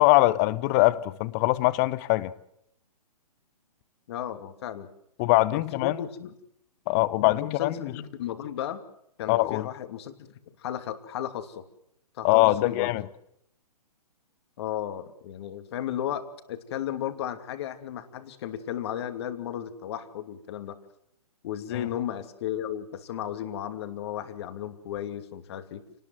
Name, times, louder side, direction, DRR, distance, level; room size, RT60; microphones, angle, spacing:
voice 1, 0.0-2.3 5.2-6.0 6.9-7.9 9.3-9.7 12.2-13.0 21.7-21.8, left 19 dB, 25° left, 0.9 m, -22 dB
voice 2, 4.1-4.9 5.5-6.3 7.2-8.8 9.2-10.3 10.6-11.6 12.2-12.9 14.6-20.8 21.4-25.8, left 10 dB, 40° left, 2.7 m, -34 dB
28.5 x 19.5 x 7.8 m
figure-of-eight pair, 130°, 20 cm